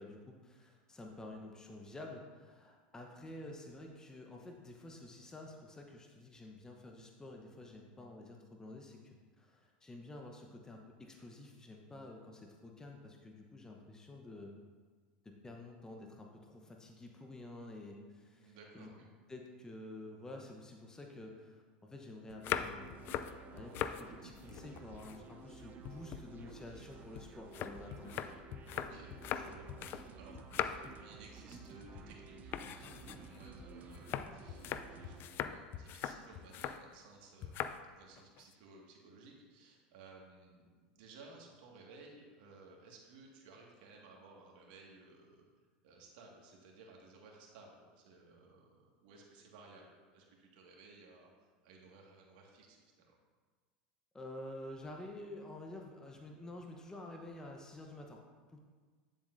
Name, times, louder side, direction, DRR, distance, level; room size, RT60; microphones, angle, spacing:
voice 1, 0.0-14.5 15.2-18.9 19.3-22.9 23.5-28.4 54.1-58.2 58.5-58.6, left 1 dB, 15° left, 1 dB, 0.9 m, -50 dB
voice 2, 18.4-19.1 28.7-30.4 30.9-45.4 45.8-53.2, right 3 dB, 70° right, -1 dB, 1.8 m, -58 dB
sound 1, 22.3-24.0 24.4-25.6 25.9-30.1 30.3-31.0 31.4-31.7 31.9-32.1 32.5-36.8 37.4-37.8 38.2-38.5, left 10 dB, 45° left, 0.4 m, -41 dB
sound 2, 22.5-35.2, right 5 dB, 35° right, 0.7 m, -53 dB
9.6 x 7.4 x 2.6 m, 1.5 s
hypercardioid pair, 100°, 5 cm